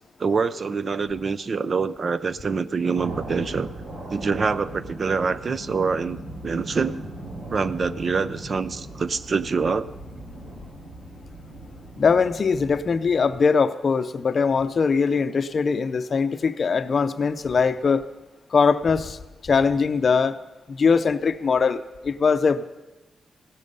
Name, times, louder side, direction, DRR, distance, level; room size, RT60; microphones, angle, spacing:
voice 1, 0.2-3.7 4.1-7.0 7.5-9.9, right 5 dB, 40° right, 15 dB, 0.4 m, -25 dB
sound 1, 2.9-13.3, right 1 dB, 75° right, 3.3 m, -38 dB
voice 2, 12.0-18.0 18.5-19.2 19.4-20.4 20.7-22.6, left 5 dB, 45° left, 11 dB, 0.6 m, -21 dB
17.0 x 13.0 x 5.4 m, 1.1 s
wide cardioid pair, 145°, 0 cm